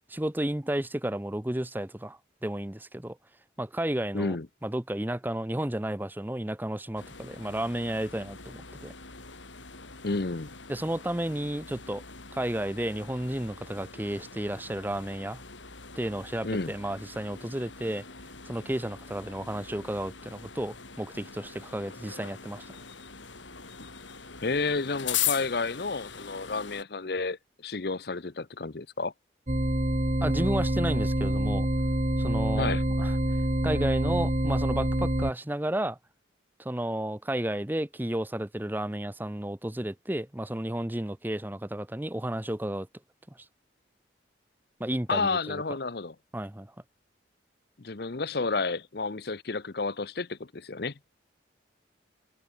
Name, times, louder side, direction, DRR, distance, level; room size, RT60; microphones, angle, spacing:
voice 1, 0.1-3.2 3.6-4.4 4.6-8.9 10.7-12.0 12.3-15.4 16.0-18.0 18.5-22.6 30.2-31.7 32.2-32.7 33.0-33.2 33.6-36.0 36.6-42.9 44.8-45.6 46.3-46.7, right 1 dB, 10° right, 0.7 m, -32 dB
voice 2, 4.1-4.5 10.0-10.5 16.4-16.7 24.4-29.1 32.6-32.8 45.1-46.1 47.8-50.9, left 3 dB, 55° left, 0.8 m, -31 dB
sound 1, 7.0-26.8, left 9 dB, 80° left, 7.1 m, -41 dB
sound 2, 29.5-35.3, right 1 dB, 35° right, 1.6 m, -26 dB
head